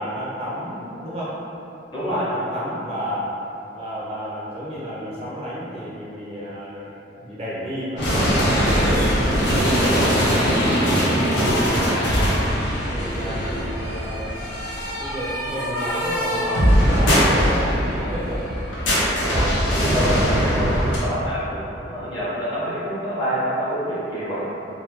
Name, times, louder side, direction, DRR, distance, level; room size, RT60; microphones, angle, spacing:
voice 1, 0.0-1.4 2.0-3.3 3.7-6.9 7.2-9.0 11.4-12.0 12.9-14.3 15.0-18.5 21.4-21.9, equal, 35° right, -8 dB, 0.4 m, -31 dB
voice 2, 1.9-2.2 9.7-10.1 10.4-10.6 11.3-12.1 13.2-13.3 19.2-24.4, equal, 20° left, -10 dB, 0.7 m, -28 dB
sound 1, 8.0-21.0, equal, 85° left, 0.6 m, -21 dB
2.3 x 2.1 x 2.9 m, 2.8 s
head